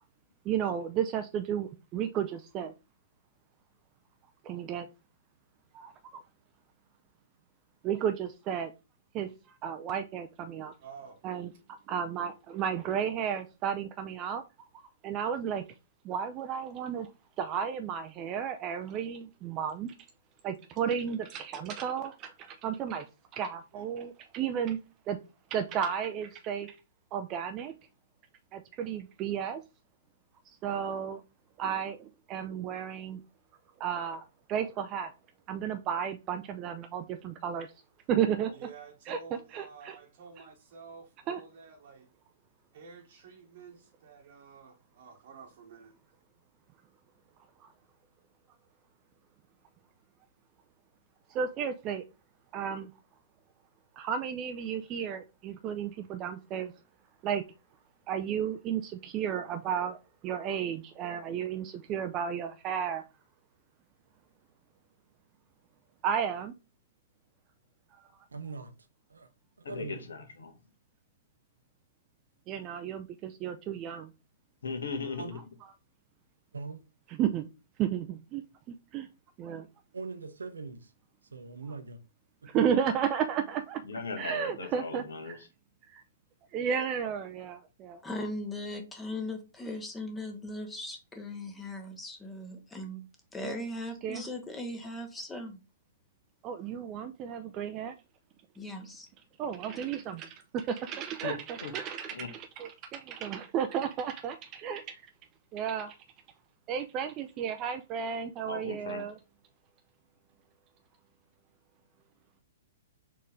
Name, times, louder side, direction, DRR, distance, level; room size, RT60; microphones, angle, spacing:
voice 1, 0.5-2.7 4.4-4.9 5.7-5.9 7.8-8.7 9.1-9.3 9.6-10.7 11.2-11.5 11.9-14.7 15.0-15.6 16.0-17.1 17.4-19.9 20.4-23.1 23.3-24.8 25.1-25.2 25.5-26.8 27.1-27.7 28.5-29.6 30.6-31.2 31.6-33.2 33.8-34.2 34.5-35.1 35.5-37.7 38.1-38.6 39.1-39.2 39.5-39.9 41.3-41.4 47.6-47.7 51.3-52.0 52.5-52.9 54.0-56.7 57.2-57.4 58.1-63.0 66.0-66.5 72.5-74.1 77.2-77.4 77.8-79.1 79.4-79.7 82.4-83.8 84.2-85.4 85.9-86.0 86.5-88.0 93.4-93.6 94.0-94.2 96.4-97.9 99.4-105.0 105.5-106.0 106.7-109.1, right 8 dB, 30° right, 0.4 m, -33 dB
voice 2, 10.8-11.2 23.7-24.1 38.5-42.1 42.7-46.0, right 5 dB, 55° right, 1.0 m, -50 dB
voice 3, 68.3-68.7 69.1-69.3 69.6-70.0 75.2-75.4 76.5-76.8 79.9-80.9 81.3-82.0 82.4-82.5, right 4 dB, 80° right, 0.7 m, -41 dB
voice 4, 69.6-70.5 74.6-75.4 83.8-85.5 101.2-101.3 101.6-101.7 102.1-102.3 108.4-109.0, left 4 dB, 75° left, 1.1 m, -38 dB
voice 5, 88.0-93.1 93.3-95.6 98.6-99.1, left 1 dB, 10° left, 0.8 m, -38 dB
4.3 x 3.1 x 3.6 m
figure-of-eight pair, 115°, 0 cm